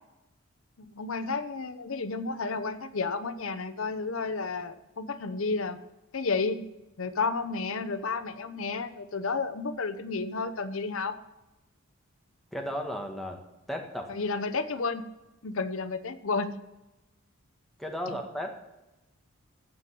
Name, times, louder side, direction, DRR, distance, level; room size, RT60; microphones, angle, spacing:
voice 1, 0.8-5.8 6.1-6.6 7.0-11.2 14.1-15.1 15.4-16.6 18.1-18.2, left 4 dB, 65° left, 12 dB, 0.8 m, -31 dB
voice 2, 12.5-13.4 13.7-14.1 17.8-18.5, equal, ahead, 2 dB, 1.5 m, -34 dB
15.0 x 5.3 x 7.5 m, 1.0 s
head